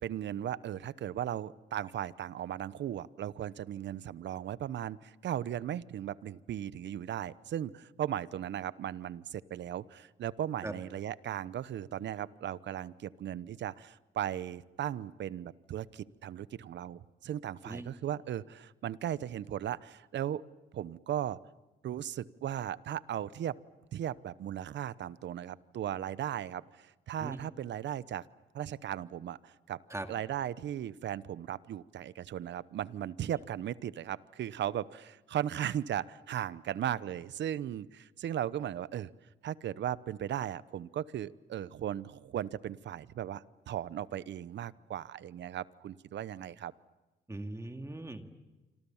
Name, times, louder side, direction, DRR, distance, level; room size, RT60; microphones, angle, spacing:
voice 1, 0.0-20.4 20.7-21.4 21.8-23.6 23.9-28.2 28.5-29.8 30.1-39.1 39.4-46.7, right 11 dB, 65° right, 18 dB, 0.9 m, -37 dB
voice 2, 47.3-48.3, right 2 dB, 15° right, 6 dB, 2.2 m, -39 dB
27.0 x 26.0 x 7.2 m, 1.1 s
cardioid pair, 90°, 20 cm